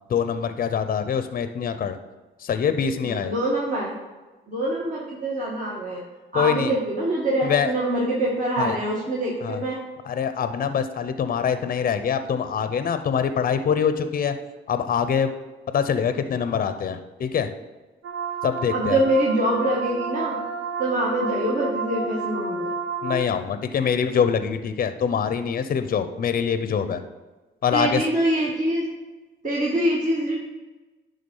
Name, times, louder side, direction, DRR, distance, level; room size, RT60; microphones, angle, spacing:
voice 1, 0.1-2.0 2.4-3.3 6.3-6.7 7.4-7.7 8.6-8.8 9.4-9.6 10.0-14.4 14.7-15.3 15.7-17.5 18.4-19.0 23.0-27.0 27.6-28.0, left 7 dB, 45° left, 10 dB, 0.7 m, -24 dB
voice 2, 3.0-3.9 4.5-6.0 6.3-9.8 18.7-20.4 20.8-22.7 27.7-28.8 29.4-30.4, right 1 dB, 40° right, -5 dB, 1.7 m, -24 dB
sound 1, 18.0-23.1, right 4 dB, 90° right, 1.2 m, -30 dB
10.5 x 3.7 x 5.5 m, 1.2 s
cardioid pair, 90°, 20 cm